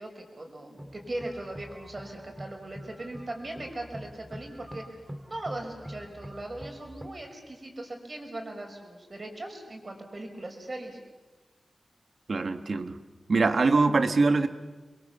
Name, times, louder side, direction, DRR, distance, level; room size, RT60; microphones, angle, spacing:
voice 1, 0.0-4.8 5.3-11.0, right 1 dB, 45° right, 3 dB, 5.6 m, -39 dB
sound 1, 0.8-7.1, equal, 10° right, 2.5 m, -45 dB
voice 2, 12.3-13.0 13.3-14.5, right 3 dB, 65° right, 9 dB, 1.6 m, -23 dB
28.5 x 22.0 x 7.0 m, 1.3 s
wide cardioid pair, 65°, 0 cm